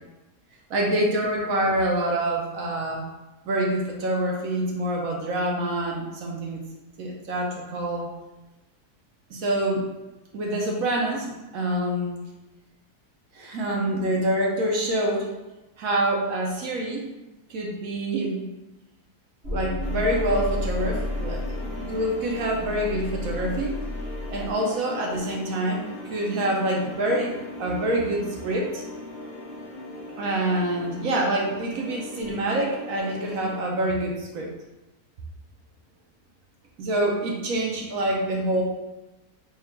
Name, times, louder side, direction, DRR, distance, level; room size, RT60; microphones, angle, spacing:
voice 1, 0.7-3.0 3.4-6.6 7.0-8.1 9.3-9.8 10.3-12.1 13.4-15.3 15.8-17.0 17.5-18.4 19.5-23.7 24.3-25.8 26.1-28.8 30.2-34.5 36.8-38.6, right 1 dB, 70° right, -1 dB, 1.1 m, -26 dB
sound 1, 19.4-24.5, left 1 dB, 45° right, 1.3 m, -32 dB
sound 2, 19.8-33.6, left 1 dB, 90° left, 0.4 m, -39 dB
3.4 x 2.3 x 4.3 m, 1.0 s
omnidirectional pair, 1.6 m